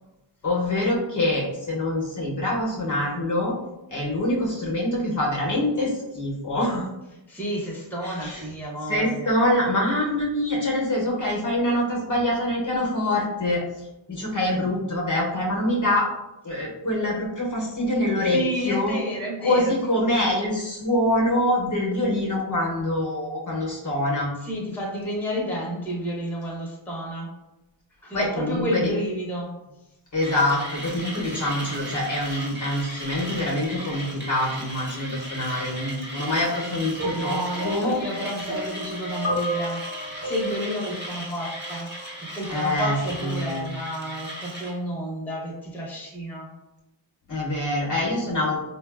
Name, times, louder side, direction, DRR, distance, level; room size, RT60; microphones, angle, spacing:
voice 1, 0.4-3.6 3.9-6.9 8.0-8.4 8.9-13.6 14.1-16.1 16.4-18.9 19.4-24.3 28.1-28.8 30.1-38.0 42.5-42.9 43.2-43.7 47.3-48.6, left 1 dB, 40° left, -3 dB, 0.8 m, -25 dB
voice 2, 7.3-9.4 18.2-19.7 24.4-27.3 28.0-29.5 37.1-41.9 42.3-46.5, equal, 5° left, -4 dB, 0.8 m, -31 dB
Mechanisms, 30.2-44.8, right 1 dB, 20° right, 1.0 m, -37 dB
sound 1, 37.0-42.1 43.0-43.2, right 1 dB, 35° right, 1.3 m, -32 dB
3.5 x 2.2 x 2.3 m, 0.95 s
wide cardioid pair, 75°, 49 cm